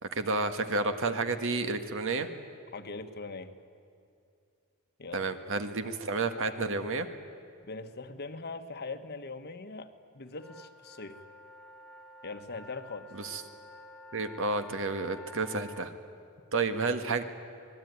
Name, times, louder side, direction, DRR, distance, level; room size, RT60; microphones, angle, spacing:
voice 1, 0.0-2.3 5.1-7.1 13.1-13.4 14.1-15.9 16.5-17.2, right 3 dB, 60° right, 8 dB, 1.6 m, -31 dB
voice 2, 2.7-3.5 5.0-5.2 7.6-9.9 10.1-11.2 12.2-13.1, left 3 dB, 50° left, 8 dB, 1.3 m, -41 dB
sound 1, 10.3-15.9, left 1 dB, ahead, 1.9 m, -50 dB
26.0 x 20.0 x 9.5 m, 2.5 s
head